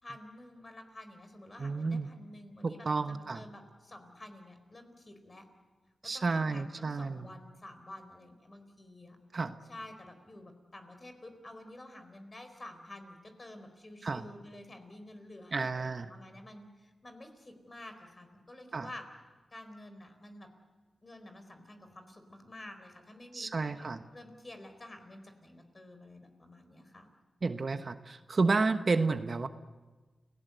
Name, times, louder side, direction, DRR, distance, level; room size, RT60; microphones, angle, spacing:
voice 1, 0.0-5.4 6.1-9.2 9.7-19.1 19.5-20.5 21.0-27.1, left 1 dB, 30° left, 7 dB, 4.4 m, -50 dB
voice 2, 1.6-2.1 2.6-3.4 6.0-7.3 9.3-9.6 14.0-14.3 15.5-16.1 18.7-18.9 23.3-24.0 27.4-29.5, right 3 dB, 50° right, 9 dB, 1.1 m, -31 dB
30.0 x 18.0 x 8.1 m, 1.3 s
cardioid pair, 70°, 0 cm